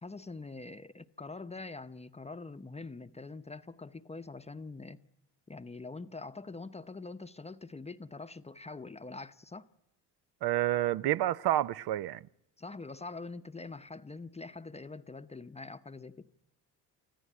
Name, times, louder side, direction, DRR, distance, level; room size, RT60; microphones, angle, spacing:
voice 1, 0.0-5.0 5.5-9.7 12.6-16.3, left 3 dB, 15° left, 0.8 m, -44 dB
voice 2, 10.4-12.2, right 13 dB, 65° right, 0.8 m, -29 dB
25.5 x 14.5 x 9.4 m
cardioid pair, 95°, 42 cm